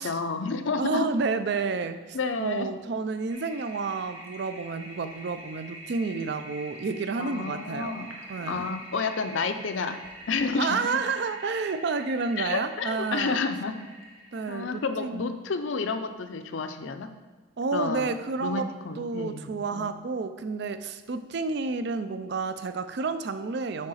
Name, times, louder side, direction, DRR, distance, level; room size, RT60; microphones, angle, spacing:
voice 1, 0.0-1.0 2.1-2.7 7.2-8.1 8.5-10.0 10.3-10.8 12.4-13.8 14.5-17.1 17.7-18.1 18.4-19.9, left 4 dB, 70° left, 9 dB, 0.5 m, -30 dB
voice 2, 0.8-8.8 10.5-13.4 14.3-15.3 17.6-23.9, right 4 dB, 55° right, 11 dB, 0.4 m, -30 dB
Toilet flush, 3.3-14.8, right 1 dB, 75° right, 1.3 m, -45 dB
6.5 x 4.8 x 5.6 m, 1.3 s
head